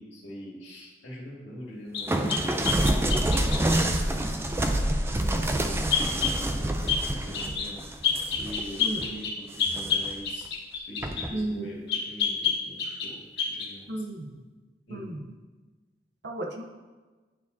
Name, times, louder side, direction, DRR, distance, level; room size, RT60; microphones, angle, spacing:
voice 1, 0.0-4.8 5.1-7.8 8.3-14.0 14.9-15.1, equal, 85° left, -6 dB, 1.9 m, -43 dB
sound 1, 1.9-3.9 5.9-6.4 6.9-7.1 7.3-7.7 8.0-11.3 11.9-13.1 13.4-13.7, left 6 dB, 65° left, 1.2 m, -28 dB
sound 2, 2.1-9.1 9.5-10.2 11.0-11.3, right 1 dB, 15° right, 0.3 m, -27 dB
voice 2, 11.3-11.7 13.9-14.2 14.9-15.2 16.2-16.6, right 1 dB, 75° right, 2 dB, 0.7 m, -33 dB
10.5 x 4.8 x 2.7 m, 1.3 s
head